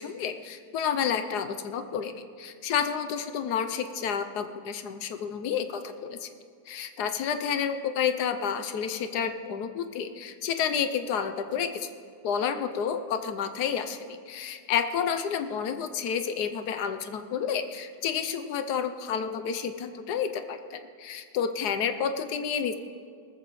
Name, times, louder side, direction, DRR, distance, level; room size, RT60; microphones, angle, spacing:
voice 1, 0.0-6.3 6.7-11.9 12.2-22.7, left 7 dB, 65° left, 9 dB, 1.1 m, -30 dB
19.0 x 14.5 x 3.1 m, 2.2 s
omnidirectional pair, 2.1 m